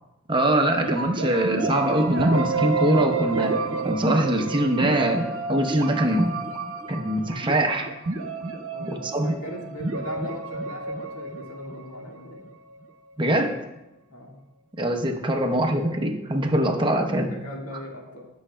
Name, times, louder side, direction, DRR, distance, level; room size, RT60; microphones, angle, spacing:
voice 1, 0.3-3.5 3.8-6.4 6.9-7.9 8.9-9.3 13.2-13.5 14.8-17.3, right 1 dB, 25° right, 3 dB, 0.8 m, -23 dB
sound 1, 0.8-12.5, right 3 dB, 70° right, 0.9 m, -29 dB
voice 2, 8.7-12.4 14.1-14.4 17.2-18.3, left 1 dB, 90° left, -1 dB, 1.9 m, -39 dB
16.5 x 6.3 x 2.2 m, 0.95 s
head